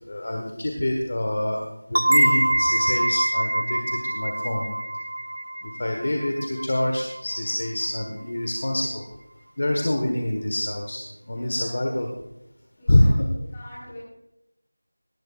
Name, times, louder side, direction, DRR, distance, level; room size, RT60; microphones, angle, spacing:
voice 1, 0.1-1.6 1.9-4.7 5.6-9.0 9.6-12.1 12.9-13.3, left 1 dB, 40° left, 2 dB, 1.5 m, -25 dB
sound 1, 1.9-7.4, right 1 dB, 60° right, 0.6 m, -24 dB
voice 2, 11.3-12.1 12.8-13.1 13.5-14.0, left 1 dB, 10° left, -8 dB, 4.1 m, -43 dB
18.0 x 13.5 x 2.5 m, 0.87 s
figure-of-eight pair, 180°, 0 cm